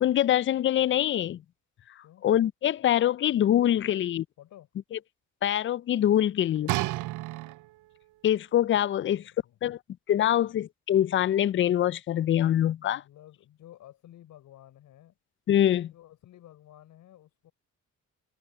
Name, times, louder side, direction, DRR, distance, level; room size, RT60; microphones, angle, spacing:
voice 1, 0.0-1.4 2.2-4.2 4.9-5.0 5.4-6.7 8.2-9.2 9.6-9.8 10.1-13.0 15.5-15.9, left 11 dB, 40° left, 0.4 m, -24 dB
voice 2, 4.4-4.7 6.5-7.2 9.0-9.6 10.4-10.6 12.7-15.2 15.7-17.5, left 13 dB, 80° left, 4.1 m, -53 dB
sound 1, 6.7-8.0 8.7-8.8, right 19 dB, 85° right, 0.5 m, -31 dB
cardioid pair, 90°, 30 cm